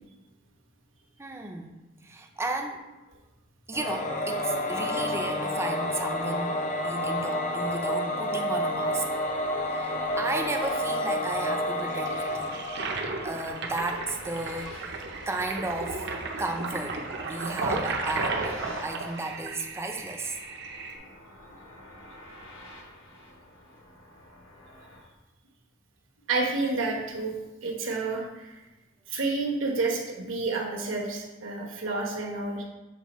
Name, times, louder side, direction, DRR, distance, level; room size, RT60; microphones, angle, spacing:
voice 1, 1.2-1.7 2.0-2.8 3.7-6.6 6.8-9.1 9.7-12.5 13.2-16.1 16.4-20.4, right 2 dB, 15° right, 3 dB, 0.5 m, -34 dB
Singing / Musical instrument, 3.7-13.8, left 1 dB, 40° left, 0.6 m, -30 dB
sound 1, 8.7-25.0, left 1 dB, 90° left, 1.3 m, -50 dB
Toilet flush, 11.8-21.0, right 3 dB, 60° right, 0.7 m, -34 dB
voice 2, 26.3-27.3 27.6-28.6 29.1-32.6, right 3 dB, 80° right, -1 dB, 1.2 m, -29 dB
7.3 x 4.2 x 3.1 m, 1.1 s
head